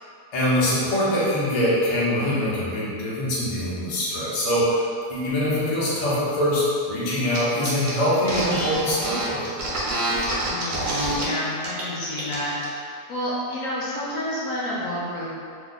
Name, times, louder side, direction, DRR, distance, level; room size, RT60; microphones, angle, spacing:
voice 1, 0.3-4.8 5.1-9.5, equal, 45° left, -9 dB, 0.5 m, -23 dB
sound 1, 7.3-7.4 7.6-11.2 11.6-11.8 12.1-12.7, right 1 dB, 60° right, 1.0 m, -27 dB
voice 2, 10.4-15.3, equal, 65° left, -7 dB, 0.9 m, -30 dB
2.9 x 2.2 x 3.9 m, 2.4 s
omnidirectional pair, 1.7 m